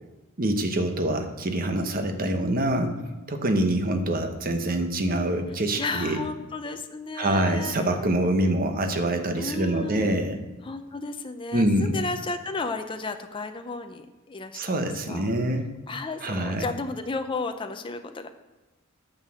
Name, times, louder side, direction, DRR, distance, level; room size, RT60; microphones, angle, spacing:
voice 1, 0.4-2.9 3.3-6.2 7.2-10.4 11.5-12.0 14.5-15.6 16.2-16.7, right 1 dB, 45° right, 6 dB, 1.1 m, -25 dB
voice 2, 5.5-8.1 9.4-10.2 10.6-14.6 15.1-15.2 15.9-18.3, left 3 dB, 25° left, 7 dB, 0.5 m, -33 dB
9.3 x 6.6 x 6.3 m, 1.1 s
head